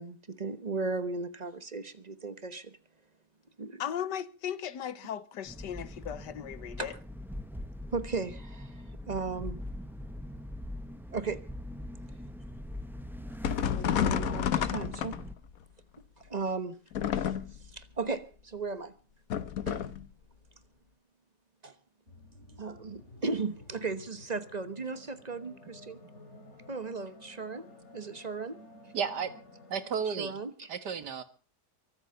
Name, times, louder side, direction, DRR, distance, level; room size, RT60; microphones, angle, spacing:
voice 1, 0.0-2.7 3.6-3.8 6.8-7.0 7.9-9.6 11.1-11.4 13.6-15.2 16.2-16.8 17.1-17.3 17.6-18.9 19.7-19.8 21.6-21.7 22.6-26.0 26.7-27.7 27.9-28.6 30.2-30.7, right 4 dB, 30° right, 1.1 m, -36 dB
voice 2, 3.8-6.9, left 9 dB, 80° left, 1.6 m, -37 dB
sound 1, 5.4-15.3, left 1 dB, 5° right, 0.3 m, -42 dB
sound 2, 13.4-15.6 16.9-17.7 19.3-20.1, left 9 dB, 60° left, 1.3 m, -30 dB
sound 3, 22.1-30.0, left 2 dB, 40° left, 3.5 m, -53 dB
voice 3, 28.9-29.3 29.7-30.4 30.7-31.2, right 6 dB, 70° right, 2.1 m, -32 dB
23.5 x 8.2 x 6.8 m
omnidirectional pair, 1.8 m